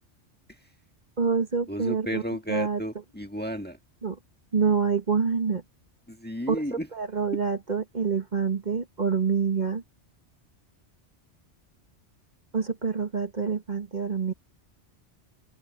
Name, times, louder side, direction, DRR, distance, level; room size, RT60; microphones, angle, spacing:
voice 1, 1.2-2.2 2.5-2.8 4.0-4.2 4.5-5.6 6.5-6.6 6.9-9.8 12.5-14.3, right 5 dB, 40° right, 1.6 m, -26 dB
voice 2, 1.7-3.8 6.1-6.9 7.3-7.4, equal, 10° left, 1.6 m, -33 dB
open air
omnidirectional pair, 1.2 m